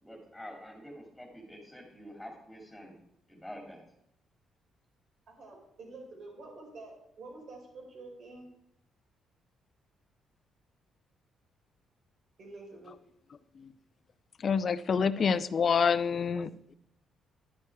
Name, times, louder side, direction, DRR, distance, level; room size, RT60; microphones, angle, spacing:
voice 1, 0.0-3.0 3.3-3.8, equal, 5° left, -1 dB, 2.8 m, -47 dB
voice 2, 5.3-8.5 12.4-12.9 15.2-15.3, right 3 dB, 60° right, 1 dB, 4.9 m, -48 dB
voice 3, 14.4-16.7, left 6 dB, 45° left, 14 dB, 0.6 m, -27 dB
11.5 x 9.1 x 4.8 m, 0.77 s
cardioid pair, 90°, 0 cm